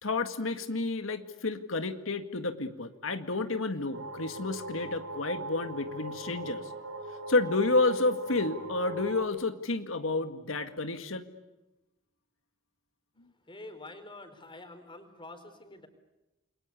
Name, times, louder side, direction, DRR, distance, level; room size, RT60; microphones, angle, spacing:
voice 1, 0.0-6.7 7.3-11.2, left 3 dB, 90° left, 8 dB, 1.9 m, -30 dB
sound 1, 3.9-9.3, right 2 dB, 85° right, 6.5 m, -40 dB
voice 2, 13.5-15.9, left 2 dB, 25° left, 7 dB, 4.4 m, -47 dB
29.5 x 22.5 x 8.4 m, 1.0 s
head